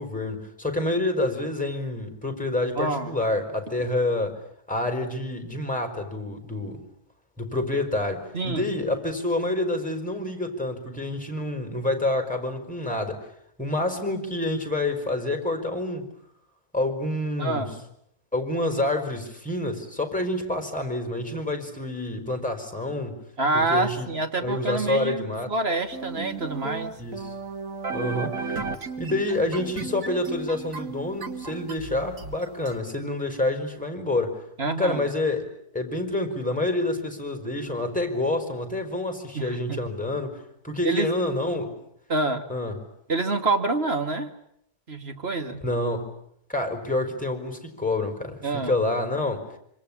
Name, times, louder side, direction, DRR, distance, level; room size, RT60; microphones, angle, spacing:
voice 1, 0.0-4.4 4.7-6.8 7.4-13.2 13.6-16.0 16.7-17.7 18.3-23.2 23.5-24.1 24.4-25.5 26.9-27.3 27.9-28.7 29.0-34.4 34.8-35.5 35.7-41.7 42.5-42.8 45.6-46.1 46.5-49.4, left 2 dB, 5° left, 6 dB, 4.9 m, -28 dB
voice 2, 2.7-3.2 8.3-8.7 17.4-17.8 23.4-27.0 34.6-35.0 39.3-39.8 40.8-41.1 42.1-42.4 43.1-44.3 44.9-45.6 48.4-48.7, right 2 dB, 40° right, 7 dB, 2.6 m, -27 dB
sound 1, 25.9-32.8, right 4 dB, 55° right, 2.3 m, -34 dB
26.5 x 26.0 x 8.7 m, 0.72 s
omnidirectional pair, 1.8 m